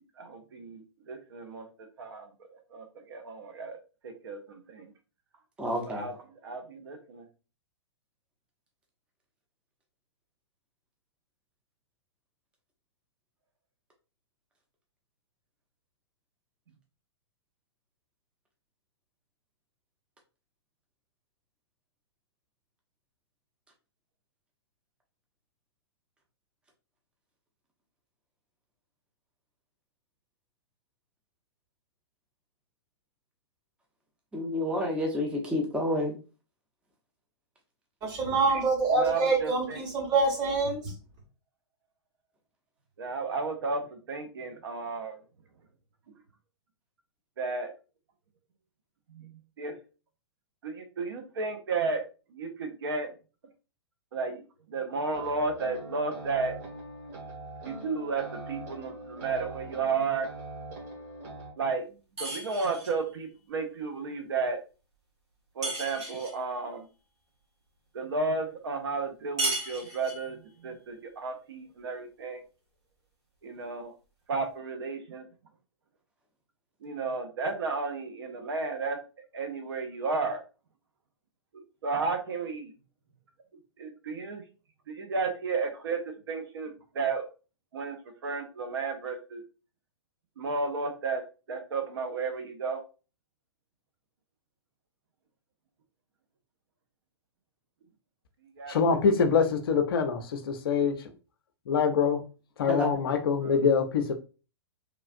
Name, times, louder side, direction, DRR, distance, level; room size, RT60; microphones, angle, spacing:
voice 1, 0.0-1.7 2.0-2.3 2.7-3.8 4.0-4.9 5.9-7.3 38.9-39.8 43.0-45.2 47.4-47.7 49.1-49.7 50.6-52.0 52.3-53.1 54.1-54.4 54.7-56.5 57.6-60.3 61.6-61.8 62.1-64.6 65.6-66.9 67.9-72.4 73.4-73.9 74.3-75.2 76.8-79.0 79.3-80.4 81.5-82.7 83.8-84.4 84.9-86.0 86.3-87.2 87.7-88.0 88.2-89.4 90.4-91.2 91.5-92.8 98.6-98.8 103.4-103.6, right 4 dB, 60° right, 6 dB, 0.6 m, -33 dB
voice 2, 5.6-6.1 34.3-36.1 102.7-102.9, left 1 dB, 5° right, 0 dB, 0.5 m, -29 dB
voice 3, 38.0-40.9, right 3 dB, 30° right, 1 dB, 1.0 m, -26 dB
sound 1, 55.1-61.5, right 2 dB, 45° right, 1.4 m, -42 dB
sound 2, 62.2-63.0 65.6-66.4 69.4-70.3, right 2 dB, 75° right, 1.5 m, -34 dB
voice 4, 98.7-100.9 101.7-102.2 102.6-104.1, left 6 dB, 55° left, 7 dB, 0.5 m, -24 dB
3.1 x 2.4 x 2.4 m, 0.33 s
figure-of-eight pair, 110°, 15 cm